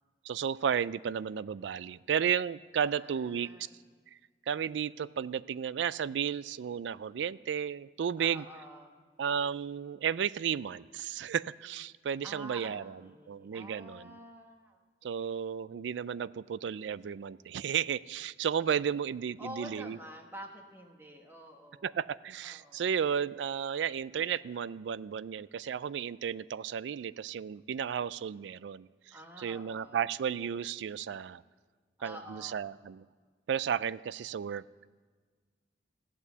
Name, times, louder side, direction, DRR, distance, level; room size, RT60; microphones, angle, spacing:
voice 1, 0.3-3.5 4.5-8.4 9.2-12.8 13.3-14.2 15.0-20.0 21.8-31.4 32.0-33.1 33.5-34.9, right 8 dB, 85° right, 19 dB, 0.3 m, -33 dB
voice 2, 2.8-3.8 8.2-8.9 9.2-9.8 12.2-15.3 19.4-22.0 22.4-22.8 29.1-30.0 32.0-32.7, equal, 10° right, 2 dB, 1.3 m, -48 dB
15.0 x 8.4 x 6.8 m, 1.5 s
head